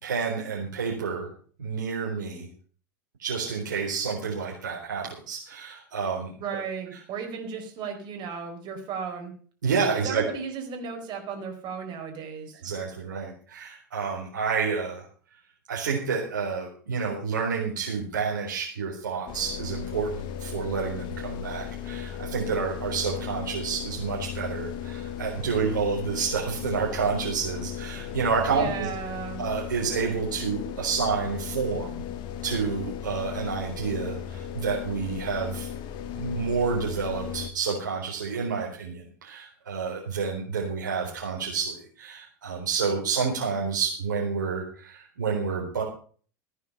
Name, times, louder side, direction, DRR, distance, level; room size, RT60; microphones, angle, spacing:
voice 1, 0.0-1.3 1.6-2.5 3.2-6.6 9.6-10.2 12.6-15.0 15.7-28.9 29.4-32.0 32.4-35.7 36.1-45.8, right 5 dB, 85° right, -3 dB, 4.1 m, -29 dB
voice 2, 6.4-9.3 10.0-12.6 28.5-29.4, right 6 dB, 50° right, 3 dB, 4.5 m, -35 dB
sound 1, 19.3-37.5, left 9 dB, 50° left, 1.9 m, -36 dB
15.5 x 9.6 x 5.7 m, 0.43 s
hypercardioid pair, 85°, 10 cm